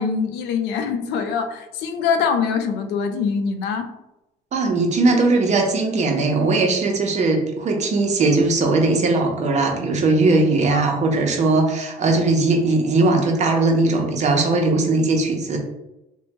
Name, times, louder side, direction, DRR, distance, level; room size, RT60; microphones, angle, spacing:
voice 1, 0.0-3.9 10.7-10.8, left 6 dB, 85° left, 7 dB, 0.4 m, -23 dB
voice 2, 4.5-15.6, right 3 dB, 45° right, 2 dB, 0.7 m, -19 dB
3.0 x 2.2 x 2.9 m, 0.91 s
cardioid pair, 110°, 17 cm